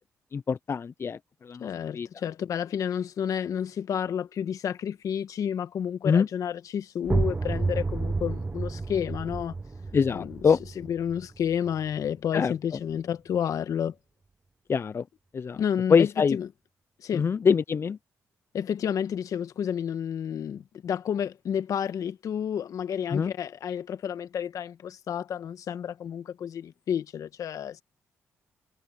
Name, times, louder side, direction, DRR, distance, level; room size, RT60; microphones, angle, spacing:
voice 1, 0.3-1.7 1.9-2.1 6.0-6.3 9.9-10.6 12.3-12.5 14.7-15.0 15.3-15.6 15.9-16.4 17.1-18.0 23.1-23.3, left 6 dB, 45° left, 0.5 m, -24 dB
voice 2, 1.6-9.6 10.1-10.4 10.8-13.9 15.6-16.5 17.0-17.3 18.5-27.8, left 8 dB, 70° left, 1.4 m, -30 dB
sound 1, 7.0-12.6, right 3 dB, 25° right, 0.8 m, -31 dB
cardioid pair, 65°, 6 cm